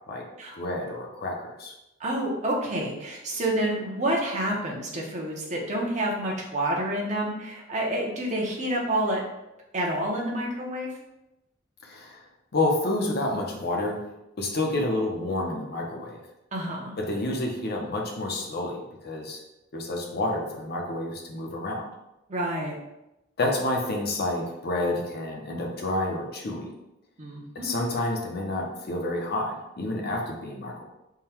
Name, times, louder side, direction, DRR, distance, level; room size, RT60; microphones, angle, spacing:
voice 1, 0.5-1.7 11.8-12.2 12.5-14.0 14.4-16.2 17.0-19.4 19.7-21.8 23.4-26.7 27.5-30.8, left 2 dB, 50° left, 0 dB, 0.7 m, -29 dB
voice 2, 2.0-9.2 9.7-10.9 16.5-16.9 22.3-22.8 27.2-27.7, right 1 dB, 35° right, -2 dB, 0.8 m, -28 dB
3.7 x 2.2 x 4.3 m, 0.91 s
head